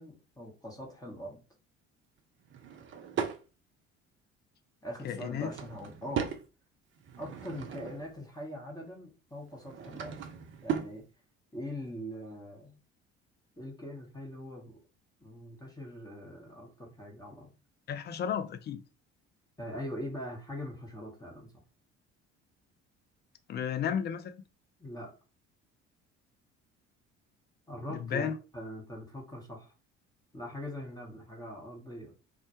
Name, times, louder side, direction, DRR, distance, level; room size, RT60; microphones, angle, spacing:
voice 1, 0.0-1.4 4.8-6.3 7.2-10.2 10.6-11.0 11.5-12.8 13.6-14.8 15.2-17.5 19.6-21.5 24.8-25.1 27.7-29.7 30.3-32.1, equal, 10° left, 0.8 m, -42 dB
Drawer open or close / Wood, 2.5-3.4 5.1-6.4 7.0-8.1 9.5-11.0, right 8 dB, 35° right, 0.5 m, -37 dB
voice 2, 5.0-5.5 17.9-18.8 23.5-24.4 27.9-28.4, left 8 dB, 30° left, 0.4 m, -33 dB
2.1 x 2.1 x 2.8 m
hypercardioid pair, 55°, 35 cm